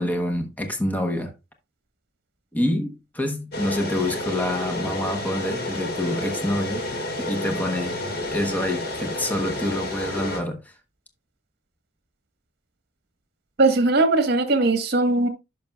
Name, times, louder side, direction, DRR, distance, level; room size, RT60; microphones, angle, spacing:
voice 1, 0.0-1.3 2.5-6.9 7.2-10.7, left 1 dB, 10° left, 0.9 m, -27 dB
sound 1, 3.5-10.4, left 1 dB, 55° left, 2.0 m, -30 dB
voice 2, 13.6-15.3, right 2 dB, 55° right, 1.4 m, -19 dB
11.0 x 5.8 x 2.3 m
head